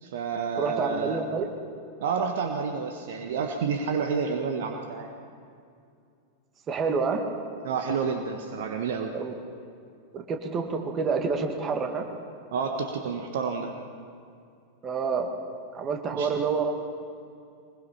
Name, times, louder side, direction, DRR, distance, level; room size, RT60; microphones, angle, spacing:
voice 1, 0.0-1.2 2.0-5.1 7.6-9.1 12.5-13.7 16.1-16.3, right 5 dB, 55° right, 5 dB, 1.4 m, -29 dB
voice 2, 0.6-1.5 6.7-7.2 9.1-9.3 10.1-12.1 14.8-15.3 15.7-16.7, right 5 dB, 25° right, 4 dB, 2.2 m, -28 dB
23.0 x 21.0 x 5.8 m, 2.4 s
figure-of-eight pair, 90°, 0 cm